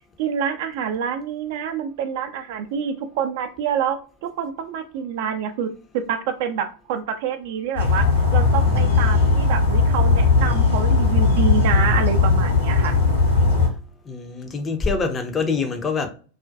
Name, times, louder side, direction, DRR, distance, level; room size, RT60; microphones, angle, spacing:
voice 1, 0.2-13.0, right 8 dB, 50° right, 0.3 m, -27 dB
sound 1, 7.8-13.7, left 4 dB, 75° left, 0.9 m, -18 dB
voice 2, 8.5-9.3 14.0-16.1, left 4 dB, 20° left, 0.5 m, -26 dB
2.4 x 2.1 x 2.4 m
figure-of-eight pair, 90°, 0 cm